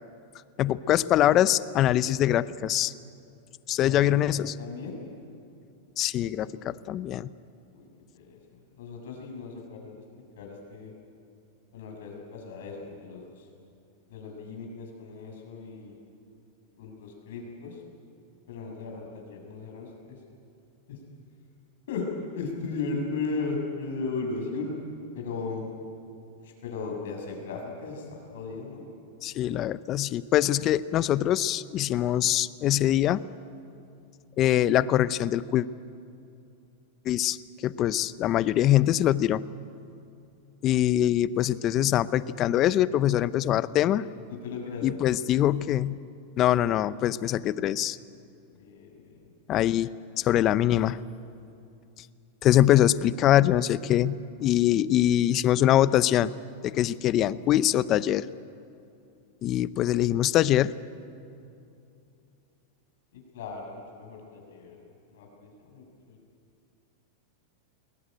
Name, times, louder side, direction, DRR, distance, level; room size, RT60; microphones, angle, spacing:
voice 1, 0.6-2.9 3.7-4.6 6.0-7.3 29.2-33.2 34.4-35.7 37.0-37.4 37.6-39.4 40.6-44.0 44.8-46.0 46.4-48.0 49.5-49.9 50.2-51.0 52.4-56.3 56.6-58.3 59.4-60.7, left 12 dB, 35° left, 17 dB, 0.6 m, -23 dB
voice 2, 4.3-5.0 7.7-7.9 8.1-10.0 10.3-10.9 11.7-13.5 14.1-15.9 16.8-17.8 18.5-20.2 20.9-21.0 21.9-24.7 25.1-25.6 26.4-28.9 41.8-41.9 43.8-44.0 44.3-45.0 48.5-49.3 63.1-64.8 65.1-66.2, left 4 dB, 75° left, 2 dB, 6.7 m, -36 dB
21.5 x 18.0 x 9.1 m, 2.6 s
supercardioid pair, 140°, 0 cm